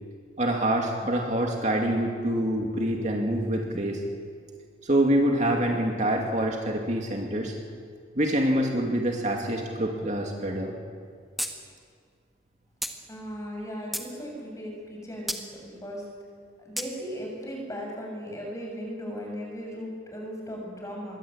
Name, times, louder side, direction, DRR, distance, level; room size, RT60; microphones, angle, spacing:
voice 1, 0.4-4.0 4.8-7.5 8.2-10.7, right 1 dB, 35° right, 1 dB, 2.4 m, -26 dB
sound 1, 11.4-11.5 11.8-11.9 12.8-12.9 13.6-14.1 15.3-15.4 16.8-16.9, equal, ahead, 1.7 m, -31 dB
voice 2, 13.1-16.0 16.7-21.2, equal, 15° left, 0 dB, 7.2 m, -37 dB
26.0 x 22.5 x 8.8 m, 2.2 s
head